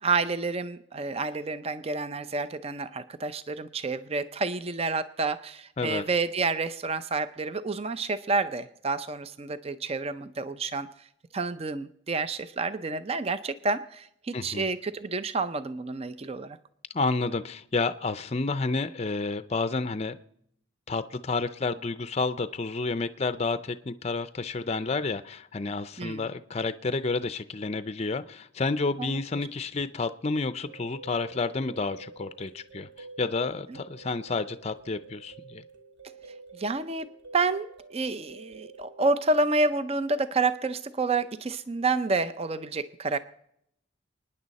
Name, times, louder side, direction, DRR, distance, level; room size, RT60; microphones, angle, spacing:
voice 1, 0.0-10.9 11.3-16.6 26.0-26.3 29.0-29.2 33.7-33.8 36.5-43.2, right 3 dB, 30° right, 13 dB, 0.5 m, -29 dB
voice 2, 14.3-14.7 16.9-20.2 20.9-32.9 33.2-35.6, left 3 dB, 30° left, 12 dB, 0.5 m, -30 dB
sound 1, 30.4-39.7, right 4 dB, 55° right, 2.4 m, -49 dB
28.5 x 9.9 x 4.1 m, 0.74 s
head